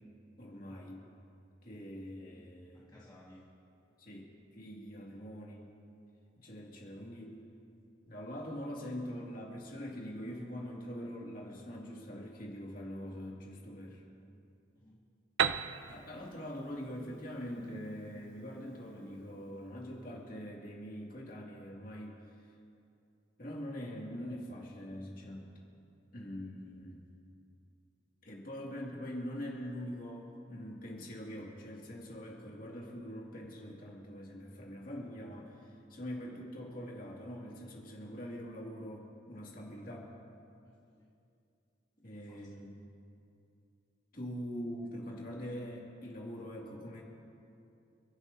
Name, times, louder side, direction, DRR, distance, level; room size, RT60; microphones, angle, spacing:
voice 1, 0.4-1.0 1.6-2.9 4.0-5.7 6.4-7.4 8.1-14.0 15.9-22.2 23.4-25.5 26.1-27.0 28.2-40.1 42.0-42.7 44.1-47.0, equal, 45° left, -3 dB, 2.4 m, -43 dB
voice 2, 2.7-3.5 5.2-5.3 14.7-15.0 40.6-41.1 42.0-42.6, left 1 dB, 20° left, -6 dB, 1.8 m, -59 dB
Piano, 15.4-19.0, right 8 dB, 85° right, 0.4 m, -36 dB
30.0 x 11.5 x 2.8 m, 2.6 s
head